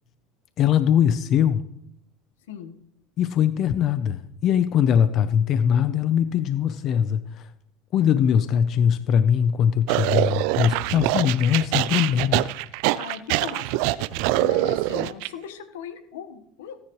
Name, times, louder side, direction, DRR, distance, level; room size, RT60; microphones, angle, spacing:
voice 1, 0.6-1.6 3.2-7.2 7.9-12.5, left 8 dB, 50° left, 12 dB, 0.7 m, -21 dB
sound 1, 9.9-15.3, right 18 dB, 70° right, 0.4 m, -24 dB
voice 2, 12.9-16.8, left 8 dB, 90° left, 9 dB, 1.3 m, -38 dB
17.0 x 9.9 x 3.1 m, 0.75 s
supercardioid pair, 105°, 0 cm